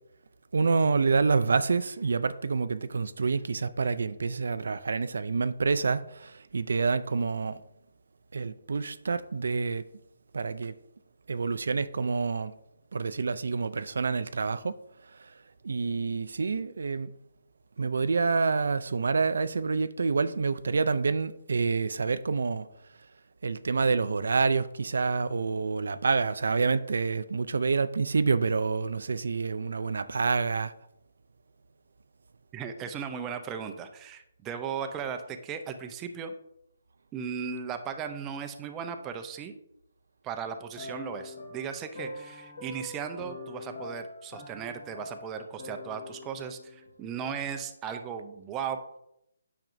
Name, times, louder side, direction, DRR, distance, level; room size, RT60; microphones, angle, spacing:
voice 1, 0.5-7.6 8.3-9.8 10.3-10.8 11.3-12.6 12.9-14.8 15.0-17.1 17.8-22.7 23.4-30.7, right 4 dB, 70° right, 0.4 m, -27 dB
voice 2, 32.5-36.3 37.1-39.6 40.2-48.8, right 7 dB, 15° right, 0.5 m, -36 dB
sound 1, 40.8-47.1, left 2 dB, 50° left, 2.4 m, -44 dB
8.8 x 6.0 x 2.6 m
hypercardioid pair, 165°, 0 cm